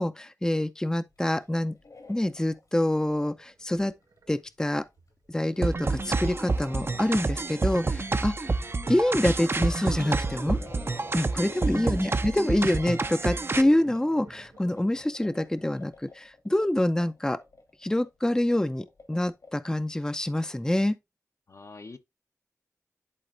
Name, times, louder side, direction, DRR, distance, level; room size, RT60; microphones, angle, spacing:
voice 1, 0.0-1.8 2.1-3.9 4.3-4.8 5.3-8.5 8.9-10.6 11.1-17.4 17.8-21.0, left 1 dB, 10° left, 0.6 m, -26 dB
sound 1, 1.1-2.8 3.2-3.3 3.7-19.5, left 3 dB, 80° left, 3.2 m, -52 dB
sound 2, 2.9-4.3 4.8-5.3 7.6-9.3 9.7-12.5 13.3-15.9, right 3 dB, 90° right, 1.1 m, -51 dB
sound 3, 5.6-13.6, right 3 dB, 45° right, 0.7 m, -28 dB
voice 2, 11.3-11.9 21.5-22.0, left 3 dB, 60° left, 1.0 m, -47 dB
11.0 x 4.1 x 2.5 m
wide cardioid pair, 65°, 6 cm